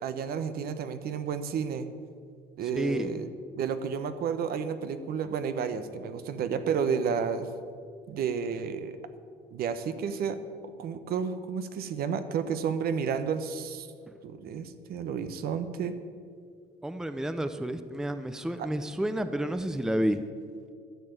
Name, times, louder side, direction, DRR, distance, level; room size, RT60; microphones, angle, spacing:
voice 1, 0.0-1.9 2.6-3.3 3.6-7.5 8.1-9.0 9.5-10.4 10.8-13.9 14.2-16.0 18.6-18.7, right 6 dB, 65° right, 10 dB, 0.9 m, -31 dB
voice 2, 2.7-3.1 16.8-20.2, right 1 dB, 5° right, 10 dB, 0.6 m, -30 dB
12.0 x 7.0 x 7.9 m, 2.2 s
cardioid pair, 110°, 17 cm